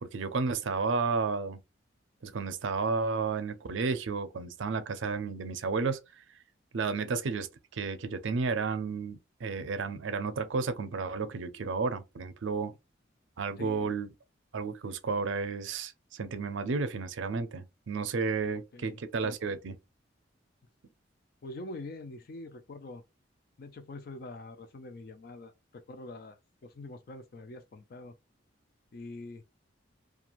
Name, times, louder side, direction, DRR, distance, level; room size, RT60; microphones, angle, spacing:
voice 1, 0.0-1.6 2.2-6.0 6.7-7.5 7.7-12.7 13.4-14.1 14.5-19.7, right 4 dB, 75° right, 0.5 m, -32 dB
voice 2, 13.6-13.9 18.5-19.0 21.4-23.0 23.6-28.1 28.9-29.4, left 2 dB, 50° left, 0.4 m, -45 dB
2.5 x 2.3 x 2.9 m
head